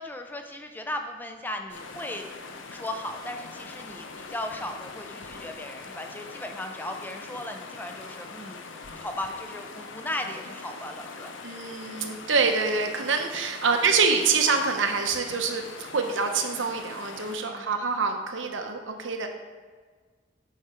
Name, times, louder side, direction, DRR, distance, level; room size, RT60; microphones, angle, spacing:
voice 1, 0.0-2.3 2.7-8.6 8.9-11.4 13.6-13.8 17.5-17.8, left 1 dB, 10° left, 5 dB, 0.5 m, -36 dB
sound 1, 1.7-17.4, left 4 dB, 80° left, 0.7 m, -42 dB
voice 2, 11.4-19.3, right 4 dB, 80° right, 4 dB, 0.9 m, -26 dB
8.2 x 5.0 x 4.3 m, 1.5 s
head